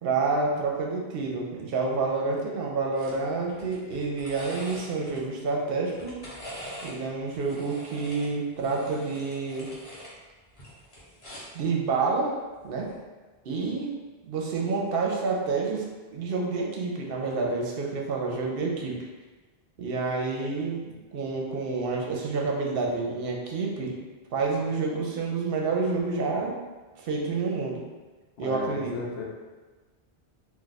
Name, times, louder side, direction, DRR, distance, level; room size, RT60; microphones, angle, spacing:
voice 1, 0.0-6.1 6.8-9.7 11.5-12.3 12.6-12.9 13.4-13.9 14.2-15.8 16.1-19.0 19.8-23.9 24.3-26.6 27.0-27.8 28.4-28.9, right 4 dB, 65° right, -1 dB, 0.8 m, -28 dB
sound 1, 3.0-3.2 3.5-5.2 5.8-7.0 7.3-10.1 10.5-11.6 12.8-13.0, equal, 35° left, 1.0 m, -43 dB
voice 2, 28.4-29.2, left 2 dB, 70° left, -2 dB, 0.8 m, -35 dB
2.4 x 2.3 x 4.0 m, 1.3 s
omnidirectional pair, 1.1 m